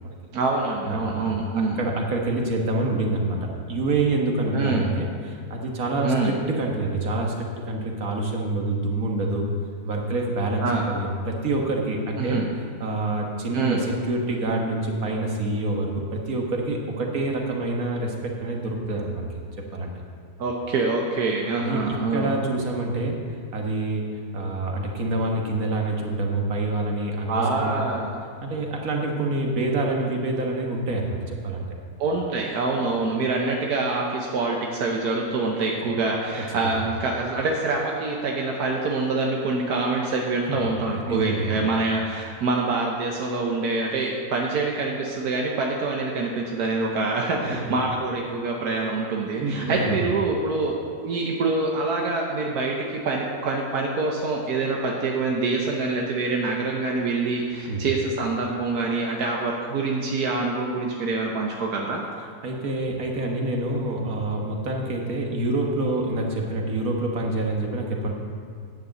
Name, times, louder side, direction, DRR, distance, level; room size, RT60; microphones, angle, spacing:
voice 1, 0.3-1.8 4.5-4.9 6.0-6.3 10.6-10.8 12.2-12.5 13.5-13.8 20.4-22.3 27.3-28.2 32.0-50.8 51.0-62.0, right 3 dB, 85° right, 0 dB, 1.5 m, -25 dB
voice 2, 0.9-9.5 9.8-12.4 12.8-19.3 19.7-19.9 21.6-23.2 23.5-24.1 24.3-27.8 28.4-31.7 35.8-35.9 36.6-36.8 41.1-41.7 47.4-47.8 49.4-50.0 57.7-57.8 62.4-68.1, right 2 dB, 65° right, 0 dB, 1.8 m, -27 dB
9.8 x 6.8 x 7.7 m, 2.1 s
omnidirectional pair, 1.6 m